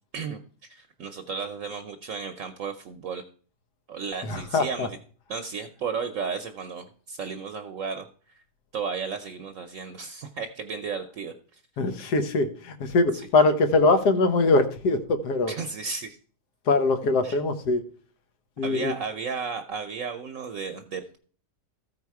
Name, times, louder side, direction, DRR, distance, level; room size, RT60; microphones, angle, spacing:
voice 1, 0.7-3.2 3.9-5.0 5.3-8.1 8.7-11.6 12.0-12.1 15.5-16.2 17.2-17.4 18.6-21.2, right 5 dB, 60° right, 7 dB, 1.0 m, -34 dB
voice 2, 4.2-4.9 11.8-15.5 16.7-17.8 18.6-18.9, left 3 dB, 80° left, 8 dB, 1.6 m, -22 dB
14.0 x 4.8 x 4.7 m, 0.43 s
omnidirectional pair, 1.7 m